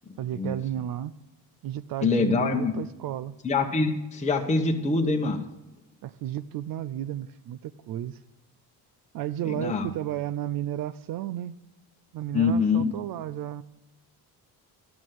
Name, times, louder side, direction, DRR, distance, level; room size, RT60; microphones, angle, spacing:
voice 1, 0.2-1.1 1.6-3.3 6.0-8.2 9.1-11.6 12.1-13.6, right 12 dB, 65° right, 15 dB, 0.5 m, -33 dB
voice 2, 2.0-2.7 3.4-5.4 9.4-9.9 12.3-12.9, left 4 dB, 20° left, 1 dB, 1.0 m, -24 dB
11.5 x 6.2 x 9.1 m, 0.98 s
cardioid pair, 125°, 37 cm